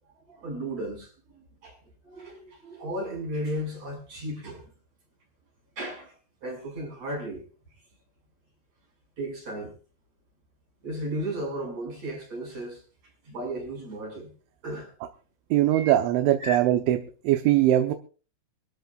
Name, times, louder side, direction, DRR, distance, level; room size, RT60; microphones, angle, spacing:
voice 1, 0.1-1.8 2.0-4.7 5.8-6.1 6.4-7.4 9.2-9.8 10.8-14.3 14.6-14.9 15.7-15.9 16.4-16.6, right 1 dB, 35° right, 2 dB, 7.4 m, -35 dB
voice 2, 15.5-17.0 17.3-17.9, right 13 dB, 85° right, 5 dB, 3.4 m, -21 dB
26.0 x 13.5 x 2.5 m, 0.37 s
omnidirectional pair, 5.3 m